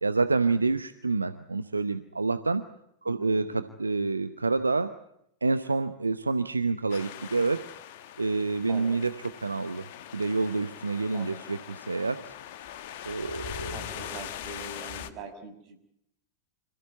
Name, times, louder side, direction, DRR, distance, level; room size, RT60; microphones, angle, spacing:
voice 1, 0.0-2.6 3.0-4.9 5.4-7.6 8.2-9.1 9.4-9.8 10.1-12.2 13.1-13.7, right 3 dB, 80° right, 11 dB, 0.9 m, -27 dB
voice 2, 3.0-3.7 8.6-9.0 11.1-11.4 13.7-15.8, right 3 dB, 40° right, 6 dB, 6.4 m, -43 dB
sound 1, 6.9-15.1, left 10 dB, 50° left, 1.6 m, -41 dB
26.5 x 15.0 x 9.6 m, 0.76 s
figure-of-eight pair, 90°, 0 cm